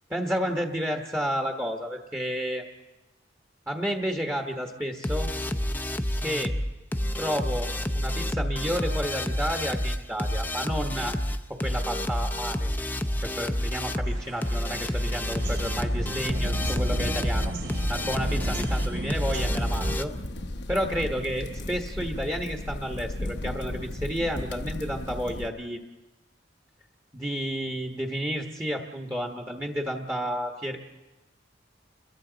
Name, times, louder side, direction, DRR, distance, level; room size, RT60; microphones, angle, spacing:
voice 1, 0.1-2.6 3.7-5.3 6.2-6.5 7.2-11.1 11.5-12.7 13.2-17.5 17.9-20.1 20.7-25.8 27.1-30.8, equal, 15° right, 2 dB, 1.2 m, -31 dB
sound 1, 5.0-20.0, left 1 dB, 10° left, 0.6 m, -29 dB
Birds light thunder, 14.0-19.9, equal, 75° right, 2.8 m, -33 dB
sound 2, 19.2-25.5, left 1 dB, 65° left, 1.0 m, -35 dB
30.0 x 22.0 x 4.0 m, 1.0 s
head